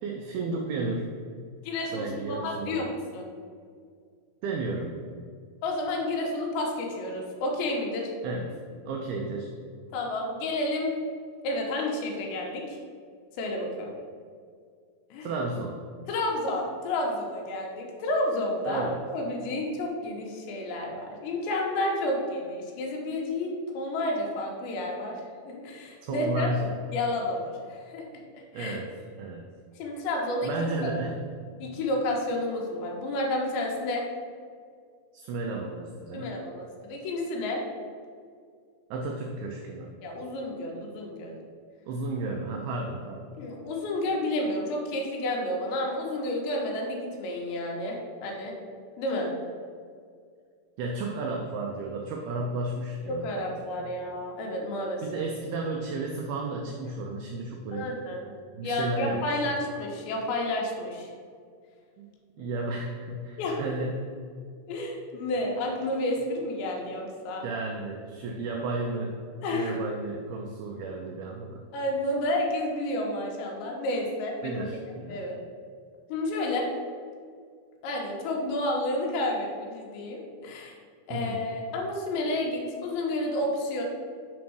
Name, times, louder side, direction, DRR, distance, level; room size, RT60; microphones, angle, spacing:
voice 1, 0.0-1.1 1.9-2.8 4.4-5.0 8.2-8.6 8.9-9.5 15.2-15.8 18.7-19.0 26.0-26.8 28.5-28.9 29.2-29.4 30.4-31.2 35.1-36.3 38.9-39.9 41.9-43.4 50.8-53.9 55.0-57.9 58.5-59.5 62.0-62.1 62.4-64.1 67.4-69.2 69.5-71.6 74.4-75.2 81.1-81.5, right 2 dB, 85° right, 1 dB, 2.2 m, -33 dB
voice 2, 1.6-3.3 5.6-8.1 9.9-11.0 11.4-12.8 13.3-13.7 15.1-15.3 16.1-26.5 26.9-28.0 28.3-28.8 29.8-30.5 31.6-34.1 36.1-37.6 40.0-41.3 43.4-48.5 49.0-49.3 53.1-55.2 57.7-58.3 58.6-61.1 63.4-63.6 64.7-67.4 69.4-69.8 71.7-74.7 75.1-75.4 76.1-76.7 77.8-80.8 81.1-83.8, left 1 dB, 80° left, 0 dB, 3.2 m, -30 dB
7.3 x 3.5 x 6.2 m, 2.1 s
omnidirectional pair, 5.1 m